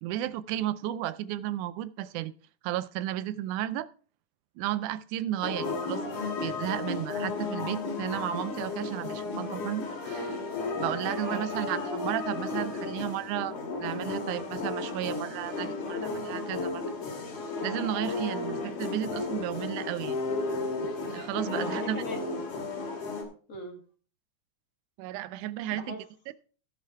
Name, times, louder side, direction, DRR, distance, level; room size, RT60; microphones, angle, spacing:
voice 1, 0.0-2.3 2.6-3.9 4.6-6.0 6.4-10.4 10.8-16.8 17.6-20.2 21.1-22.0 25.0-26.0 26.3-26.4, right 13 dB, 85° right, 2.1 m, -33 dB
sound 1, 5.4-23.2, left 3 dB, 75° left, 3.9 m, -34 dB
voice 2, 11.2-11.8 21.4-22.5 23.5-23.8 25.7-26.0, left 1 dB, 35° left, 1.4 m, -39 dB
15.5 x 5.7 x 4.6 m
omnidirectional pair, 3.5 m